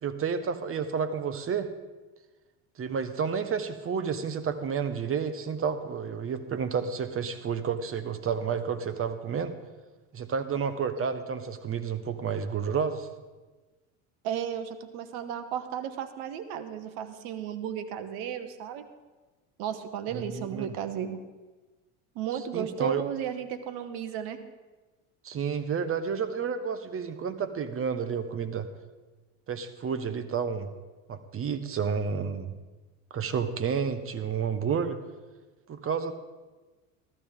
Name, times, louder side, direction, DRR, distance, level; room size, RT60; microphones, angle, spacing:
voice 1, 0.0-1.7 2.8-9.5 10.1-13.1 20.1-20.7 22.5-23.0 25.2-28.7 29.5-30.7 31.1-32.6 33.1-35.0 35.7-36.1, right 6 dB, 35° right, 11 dB, 1.2 m, -30 dB
voice 2, 14.2-18.9 19.6-21.2 22.1-24.4, right 9 dB, 65° right, 10 dB, 1.2 m, -34 dB
14.5 x 13.5 x 3.7 m, 1.2 s
hypercardioid pair, 85°, 41 cm